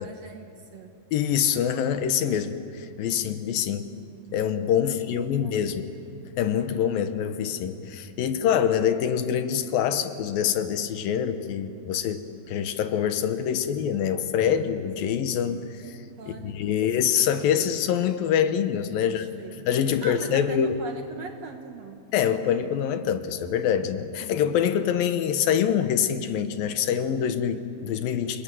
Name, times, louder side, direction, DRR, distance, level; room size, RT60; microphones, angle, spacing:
voice 1, 0.0-0.9 4.8-4.9 5.3-5.7 16.2-16.8 19.0-19.5 20.0-22.0, right 4 dB, 60° right, 4 dB, 2.1 m, -41 dB
voice 2, 1.1-4.0 4.3-5.9 6.4-16.0 16.3-19.3 19.6-20.8 22.1-28.4, left 8 dB, 75° left, 9 dB, 2.8 m, -25 dB
29.0 x 20.5 x 9.2 m, 2.5 s
omnidirectional pair, 4.3 m